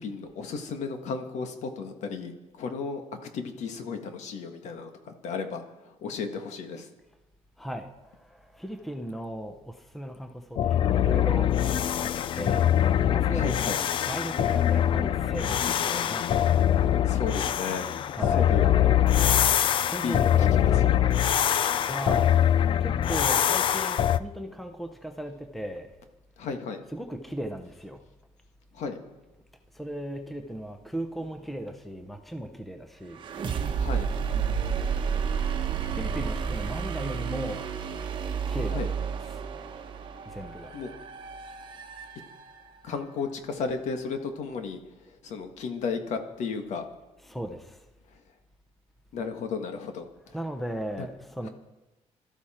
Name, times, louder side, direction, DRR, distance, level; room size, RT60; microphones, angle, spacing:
voice 1, 0.0-6.9 13.3-13.8 17.1-17.9 18.2-18.7 20.0-21.3 26.4-26.8 28.7-29.0 33.8-34.1 38.7-38.9 40.7-40.9 42.8-44.8 45.2-46.8 49.1-50.1 51.0-51.1 51.4-51.5, left 5 dB, 65° left, 6 dB, 1.7 m, -34 dB
voice 2, 7.6-7.9 8.3-11.5 12.0-12.1 12.3-12.7 13.1-13.5 14.1-16.2 18.1-18.5 19.8-20.9 21.9-22.4 22.8-25.9 26.9-28.0 29.8-33.2 34.3-34.7 35.9-37.7 38.5-38.8 39.3-39.4 40.3-40.7 47.3-47.6 50.3-51.5, right 1 dB, ahead, 6 dB, 0.8 m, -36 dB
sound 1, 10.6-24.2, left 10 dB, 40° left, 0.4 m, -23 dB
sound 2, 33.1-42.9, right 7 dB, 40° right, 1.1 m, -31 dB
21.5 x 13.0 x 4.4 m, 1.1 s
cardioid pair, 175°, 13 cm